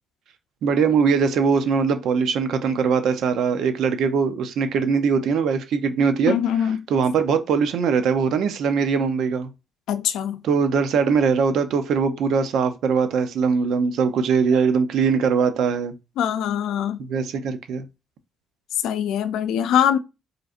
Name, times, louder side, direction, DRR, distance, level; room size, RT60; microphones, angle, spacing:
voice 1, 0.6-6.4 6.9-9.5 10.4-15.9 17.0-17.9, right 5 dB, 75° right, 0.7 m, -21 dB
voice 2, 6.3-6.8 9.9-10.4 16.2-17.0 18.8-20.0, left 9 dB, 85° left, 0.5 m, -22 dB
4.9 x 3.1 x 2.5 m
cardioid pair, 90°, 0 cm